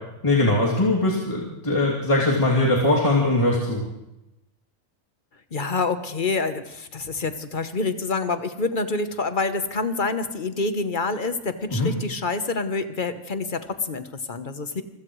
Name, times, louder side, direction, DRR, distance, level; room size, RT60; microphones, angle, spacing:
voice 1, 0.2-3.8 11.7-11.9, left 2 dB, 20° left, -4 dB, 2.8 m, -21 dB
voice 2, 5.5-14.8, left 3 dB, 40° left, 9 dB, 1.0 m, -27 dB
27.0 x 16.0 x 3.2 m, 0.91 s
omnidirectional pair, 1.6 m